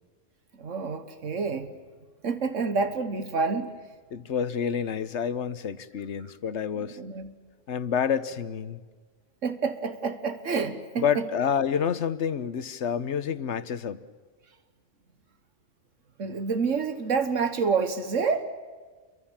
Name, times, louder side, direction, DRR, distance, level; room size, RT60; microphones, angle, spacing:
voice 1, 0.5-1.8 2.2-3.7 6.8-7.4 9.4-11.3 16.2-18.4, right 5 dB, 80° right, 1.7 m, -28 dB
voice 2, 4.1-7.0 7.7-8.8 11.0-14.0, left 7 dB, 70° left, 1.2 m, -28 dB
28.5 x 23.5 x 7.3 m
omnidirectional pair, 1.3 m